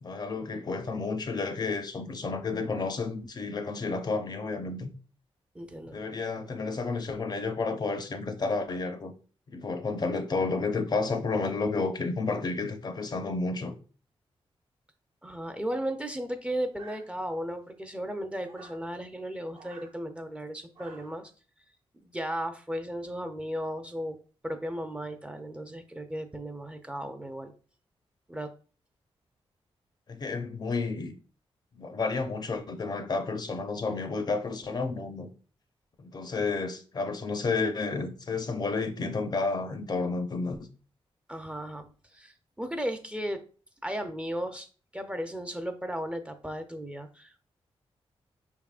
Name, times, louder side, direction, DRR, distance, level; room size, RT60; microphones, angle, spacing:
voice 1, 0.0-5.0 5.9-9.1 9.5-13.7 30.1-31.1 31.8-35.3 36.0-40.7, left 3 dB, 45° left, 0.5 m, -31 dB
voice 2, 5.5-6.0 15.2-21.3 22.0-24.2 24.4-27.5 28.3-28.5 41.3-41.9 42.1-43.4 43.8-44.7 44.9-47.4, equal, 10° right, 0.4 m, -35 dB
sound 1, 16.8-17.5 18.4-18.9 19.5-19.9 20.7-21.3, right 4 dB, 70° right, 1.1 m, -52 dB
5.3 x 3.5 x 2.4 m
wide cardioid pair, 130°, 10 cm